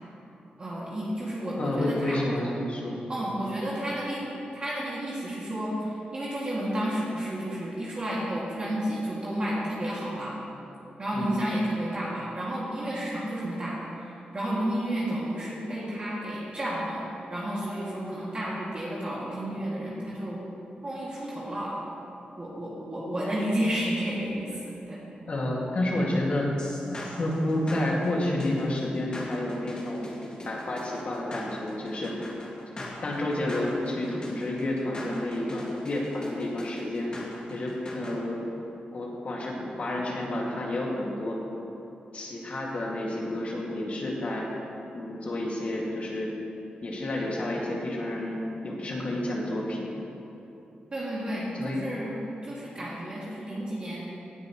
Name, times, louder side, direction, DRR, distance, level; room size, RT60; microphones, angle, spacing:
voice 1, 0.6-2.2 3.1-4.3 4.5-10.4 11.0-20.4 20.8-21.8 22.4-24.5 24.9-25.1 50.9-54.0, right 1 dB, 35° right, -8 dB, 2.3 m, -31 dB
voice 2, 1.6-3.0 11.1-11.4 25.3-26.6 27.0-30.1 30.4-32.2 33.0-37.1 37.5-38.4 38.9-41.4 42.1-44.5 44.9-46.4 46.8-49.9 51.6-51.8, left 1 dB, 45° left, -3 dB, 2.2 m, -30 dB
sound 1, 26.6-38.2, left 1 dB, 30° left, 2.3 m, -41 dB
18.0 x 9.5 x 3.1 m, 3.0 s
wide cardioid pair, 130°, 3 cm